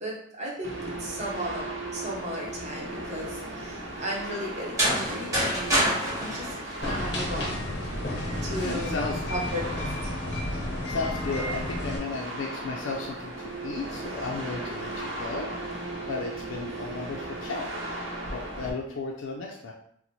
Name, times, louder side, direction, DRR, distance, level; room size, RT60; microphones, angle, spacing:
voice 1, 0.0-5.9 6.2-6.5 6.8-7.6 8.4-9.0 9.3-10.1, equal, 35° right, -3 dB, 0.8 m, -35 dB
sound 1, 0.6-18.7, right 1 dB, 85° right, 0.8 m, -37 dB
sound 2, 4.6-7.5, equal, 15° right, 1.3 m, -27 dB
sound 3, 6.8-12.0, left 1 dB, 60° left, 0.8 m, -32 dB
voice 2, 8.6-9.2 10.9-15.5 16.1-17.7 18.3-19.7, left 3 dB, 90° left, 0 dB, 0.4 m, -34 dB
3.0 x 2.1 x 4.0 m, 0.67 s
head